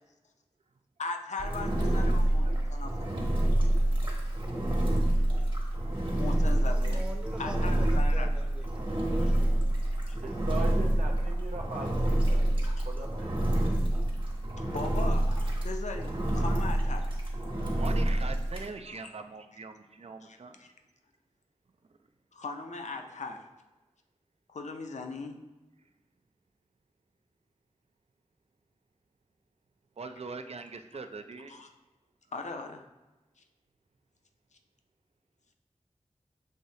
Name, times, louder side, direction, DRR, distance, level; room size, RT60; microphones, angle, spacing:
voice 1, 1.0-3.1 6.1-7.0 7.4-8.3 10.1-10.2 14.7-17.1 18.9-19.1 20.2-20.7 22.3-23.5 24.5-25.4 31.5-31.7 32.3-32.9, left 3 dB, 75° left, 5 dB, 0.5 m, -39 dB
Engine, 1.4-18.7, right 1 dB, 40° right, 1.2 m, -27 dB
voice 2, 6.4-9.6, right 1 dB, 10° right, 3 dB, 0.6 m, -45 dB
voice 3, 10.2-13.3, right 3 dB, 90° right, -1 dB, 0.7 m, -40 dB
voice 4, 17.7-20.6 30.0-31.6, right 4 dB, 60° right, 7 dB, 0.4 m, -42 dB
6.4 x 3.0 x 2.7 m, 1.1 s
wide cardioid pair, 45°, 12 cm